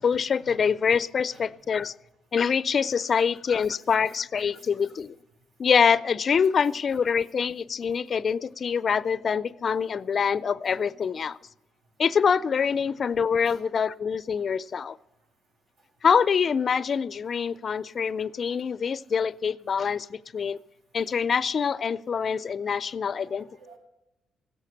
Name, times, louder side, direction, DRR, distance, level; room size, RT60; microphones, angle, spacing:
voice 1, 0.0-1.9 2.3-5.2 5.6-11.4 12.0-15.0 16.0-20.6 20.9-23.5, left 6 dB, 45° left, 0.4 m, -25 dB
voice 2, 23.1-23.8, right 2 dB, 80° right, 5.2 m, -52 dB
16.5 x 8.3 x 7.9 m
cardioid pair, 90°, 0 cm